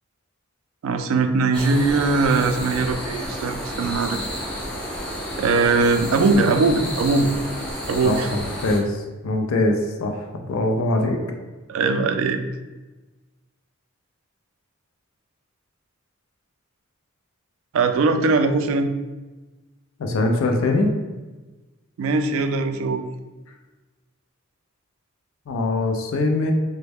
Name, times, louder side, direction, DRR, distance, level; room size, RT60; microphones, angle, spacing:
voice 1, 0.8-4.3 5.4-7.3 7.9-8.3 11.7-12.4 17.7-18.9 22.0-23.0, right 3 dB, 75° right, 8 dB, 0.3 m, -20 dB
sound 1, 1.5-8.8, equal, 5° left, 0.5 m, -31 dB
voice 2, 8.0-11.2 20.0-20.9 25.5-26.5, left 2 dB, 75° left, 3 dB, 0.4 m, -22 dB
3.1 x 2.1 x 3.4 m, 1.2 s
head